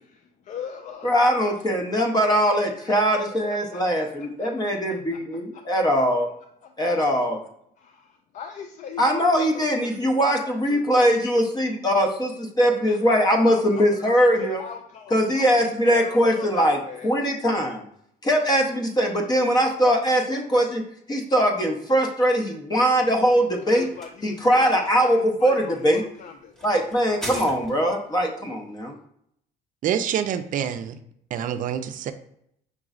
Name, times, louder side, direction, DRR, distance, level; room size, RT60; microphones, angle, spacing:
voice 1, 0.1-1.5 2.8-3.1 3.5-5.2 5.5-5.6 5.9-6.1 6.6-6.9 7.8-11.1 12.9-14.1 14.4-17.1 23.7-26.5, left 7 dB, 50° left, 5 dB, 0.4 m, -41 dB
voice 2, 1.0-6.3 6.8-7.4 9.0-14.6 15.1-16.8 17.0-17.8 18.2-20.8 21.1-23.9 24.2-26.0 26.6-28.9, equal, 25° left, 3 dB, 0.7 m, -21 dB
sound 1, 23.0-28.1, equal, 5° left, 1.0 m, -41 dB
voice 3, 29.8-31.0 31.3-32.1, right 9 dB, 50° right, 10 dB, 0.4 m, -26 dB
5.3 x 3.0 x 2.4 m, 0.71 s
cardioid pair, 110°, 17 cm